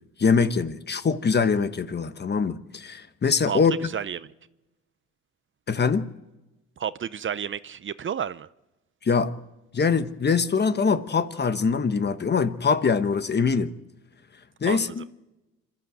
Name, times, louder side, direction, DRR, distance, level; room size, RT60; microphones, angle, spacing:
voice 1, 0.2-3.7 5.7-6.1 9.0-9.3 9.7-13.7 14.6-15.0, left 5 dB, 35° left, 1.2 m, -23 dB
voice 2, 3.5-4.3 6.8-8.5 14.7-14.9, right 8 dB, 40° right, 0.6 m, -31 dB
26.5 x 13.0 x 7.9 m
cardioid pair, 90°, 30 cm